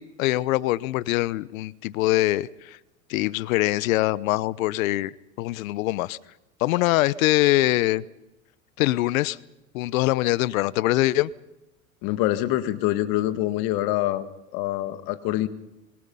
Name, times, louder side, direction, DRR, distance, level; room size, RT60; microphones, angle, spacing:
voice 1, 0.0-2.8 3.1-6.2 6.6-8.0 8.8-9.4 9.7-11.3, left 17 dB, 75° left, 0.9 m, -23 dB
voice 2, 12.0-14.3 14.5-15.5, left 15 dB, 60° left, 1.9 m, -25 dB
26.0 x 22.0 x 5.6 m
hypercardioid pair, 95°, 42 cm